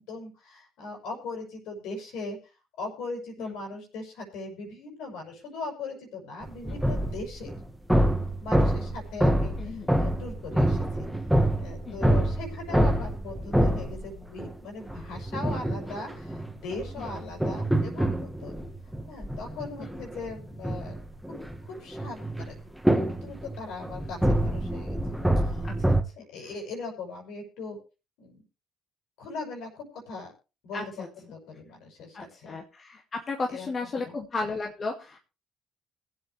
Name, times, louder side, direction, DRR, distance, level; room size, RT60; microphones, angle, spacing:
voice 1, 0.1-2.4 2.8-7.5 8.4-11.1 11.6-18.6 19.1-20.9 21.3-21.4 21.6-22.5 22.9-25.7 26.2-27.8 28.2-28.4 29.2-30.3 30.6-30.8 31.2-32.6 33.5-33.7 34.0-34.1, left 3 dB, 70° left, 2 dB, 6.2 m, -39 dB
sound 1, 6.4-14.5 14.9-26.0, right 1 dB, ahead, 2.1 m, -27 dB
voice 2, 9.6-9.9 11.9-12.2 17.0-17.3 19.8-19.9 25.6-26.0 30.7-31.1 32.1-35.2, left 3 dB, 40° left, 2 dB, 2.3 m, -35 dB
21.5 x 8.2 x 3.4 m, 0.30 s
hypercardioid pair, 60°, 0 cm